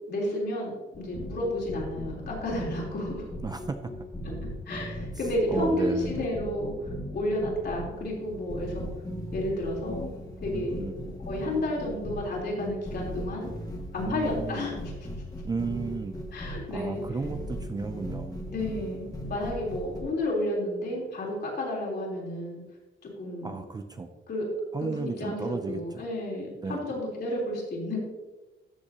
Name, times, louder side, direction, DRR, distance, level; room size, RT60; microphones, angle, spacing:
voice 1, 0.1-3.3 4.7-6.7 7.1-8.9 9.3-10.1 10.4-13.5 13.9-14.7 16.3-17.0 18.5-22.6 23.0-23.6 24.3-24.5 24.8-28.0, left 1 dB, 50° left, -3 dB, 3.5 m, -31 dB
sound 1, 0.9-20.0, equal, 15° left, 1.5 m, -38 dB
voice 2, 3.4-3.9 5.5-6.2 10.5-11.0 14.1-14.7 15.4-18.4 23.4-24.1 24.7-26.0 26.6-27.0, right 4 dB, 20° right, 7 dB, 0.4 m, -34 dB
13.5 x 7.5 x 2.8 m, 1.2 s
wide cardioid pair, 165°, 21 cm